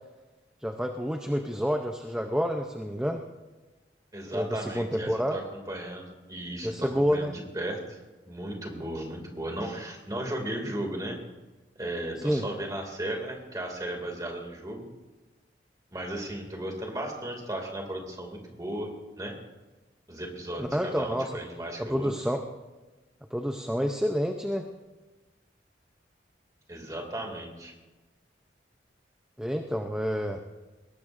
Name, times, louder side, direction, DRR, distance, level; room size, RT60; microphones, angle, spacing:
voice 1, 0.6-3.2 4.3-5.4 6.6-7.3 12.2-12.4 20.6-21.4 21.8-22.4 23.3-24.7 29.4-30.4, equal, 5° right, 4 dB, 0.7 m, -28 dB
voice 2, 4.1-8.0 8.3-11.2 11.8-14.9 15.9-19.4 20.1-22.1 26.7-27.7, right 1 dB, 20° right, 1 dB, 2.5 m, -35 dB
21.5 x 18.5 x 2.6 m, 1.2 s
head